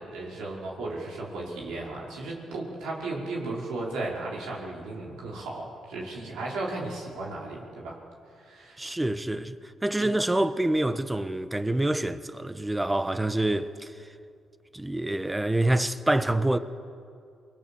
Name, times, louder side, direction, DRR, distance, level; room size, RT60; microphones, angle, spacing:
voice 1, 0.0-8.0 8.4-8.9 10.0-10.1, right 2 dB, 85° right, 5.4 m, -35 dB
voice 2, 8.8-13.9 14.7-16.6, right 1 dB, 15° right, 1.3 m, -26 dB
28.0 x 21.0 x 7.2 m
supercardioid pair, 60°, 0 cm